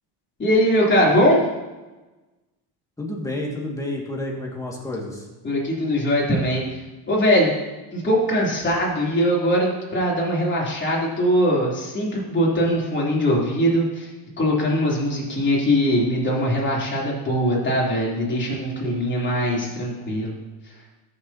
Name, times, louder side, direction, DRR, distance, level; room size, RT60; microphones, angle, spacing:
voice 1, 0.4-1.4 5.4-6.6 7.1-7.5 7.9-14.1 14.4-20.4, equal, 25° left, -5 dB, 3.4 m, -21 dB
voice 2, 3.0-5.2, left 1 dB, 5° left, -2 dB, 2.1 m, -30 dB
14.0 x 6.9 x 2.9 m, 1.1 s
cardioid pair, 110°, 45 cm